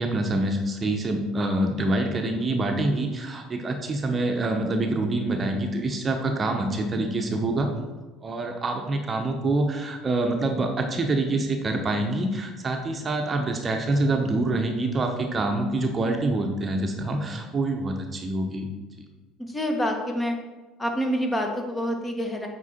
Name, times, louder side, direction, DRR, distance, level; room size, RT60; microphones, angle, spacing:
voice 1, 0.0-7.7 8.2-18.7, right 2 dB, 30° right, 3 dB, 0.9 m, -26 dB
voice 2, 19.4-20.3 20.8-22.5, equal, 20° left, 3 dB, 1.3 m, -27 dB
8.4 x 4.5 x 4.3 m, 1.3 s
figure-of-eight pair, 65°, 0 cm